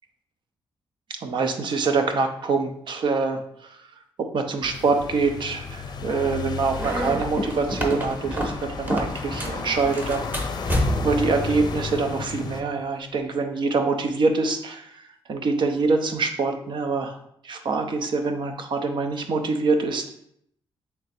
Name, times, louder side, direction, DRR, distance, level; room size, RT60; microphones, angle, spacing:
voice 1, 1.2-3.4 4.3-10.3 11.0-15.0 15.3-17.2 17.4-20.0, right 4 dB, 60° right, 5 dB, 0.6 m, -25 dB
sound 1, 4.6-12.6, left 5 dB, 50° left, 0.5 m, -33 dB
sound 2, 6.7-9.6 9.9-11.2, equal, 20° right, 0.9 m, -28 dB
3.7 x 3.4 x 4.2 m, 0.71 s
cardioid pair, 105°, 9 cm